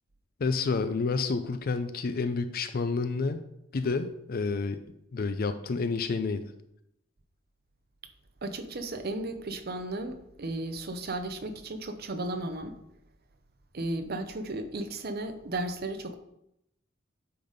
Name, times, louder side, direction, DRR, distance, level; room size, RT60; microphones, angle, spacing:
voice 1, 0.4-3.4 3.7-4.8 5.1-6.5, left 4 dB, 50° left, 0.4 m, -29 dB
voice 2, 8.4-12.8 13.7-16.2, right 2 dB, 50° right, 0.7 m, -34 dB
8.6 x 4.1 x 5.1 m
head